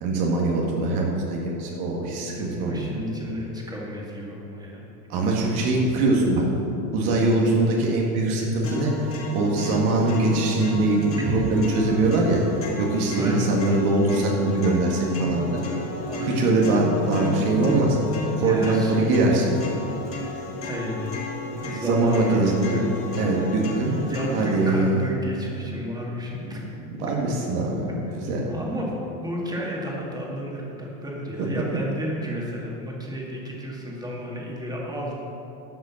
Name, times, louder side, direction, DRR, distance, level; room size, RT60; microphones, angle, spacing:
voice 1, 0.0-2.8 5.1-6.4 6.9-8.9 9.3-12.4 12.8-15.6 16.2-18.0 18.3-19.6 21.9-22.8 23.1-24.0 24.3-25.0 26.5-27.9 28.3-28.5 31.4-31.5, right 2 dB, 70° right, -2 dB, 2.0 m, -22 dB
voice 2, 2.1-4.8 13.2-13.5 16.1-16.6 18.4-19.1 20.6-21.2 21.6-22.9 23.4-23.5 23.8-26.6 28.5-35.2, equal, 10° right, -3 dB, 2.0 m, -32 dB
sound 1, 8.6-24.6, left 1 dB, 30° left, 2.1 m, -33 dB
11.5 x 5.4 x 7.2 m, 3.0 s
supercardioid pair, 130°, 46 cm